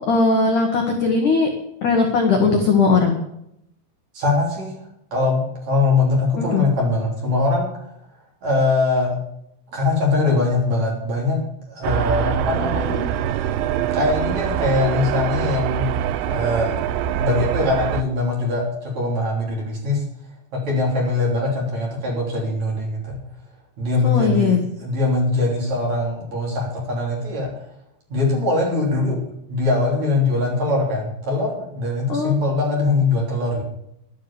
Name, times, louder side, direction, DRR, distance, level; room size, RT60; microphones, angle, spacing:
voice 1, 0.1-1.5 1.8-3.2 6.4-6.6 12.6-13.0 24.0-24.6 32.1-32.3, left 4 dB, 75° left, 3 dB, 1.8 m, -19 dB
voice 2, 4.1-7.9 8.4-9.1 9.7-11.4 11.7-13.0 13.9-15.9 16.3-16.7 17.2-20.0 20.5-23.2 23.8-27.5 28.1-29.2 29.5-33.6, left 3 dB, 40° right, -2 dB, 4.0 m, -22 dB
sound 1, 11.8-18.0, right 10 dB, 80° right, 2.8 m, -24 dB
12.0 x 10.0 x 7.0 m, 0.78 s
omnidirectional pair, 6.0 m